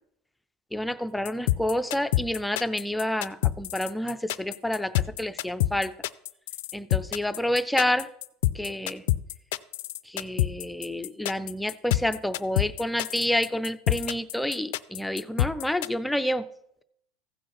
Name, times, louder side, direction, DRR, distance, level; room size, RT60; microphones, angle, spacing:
voice 1, 0.7-4.9 5.2-5.9 6.7-8.1 8.5-9.0 10.1-16.5, left 1 dB, 5° left, 11 dB, 0.4 m, -28 dB
sound 1, 1.3-15.9, left 15 dB, 80° left, 0.4 m, -27 dB
15.0 x 5.1 x 5.7 m, 0.76 s
cardioid pair, 165°, 0 cm